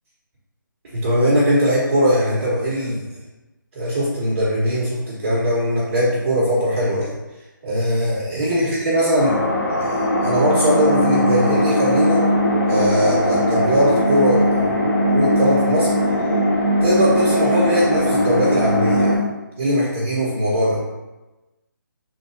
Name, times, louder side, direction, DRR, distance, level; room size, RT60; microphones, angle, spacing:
voice 1, 0.9-3.1 3.7-7.1 7.6-9.4 9.8-9.9 10.2-12.3 12.7-14.8 15.1-15.9 16.8-19.2 19.6-20.8, equal, 40° right, -8 dB, 1.3 m, -20 dB
sound 1, 9.2-19.2, equal, 70° left, 1.4 m, -19 dB
3.7 x 3.2 x 2.7 m, 1.1 s
figure-of-eight pair, 155°, 11 cm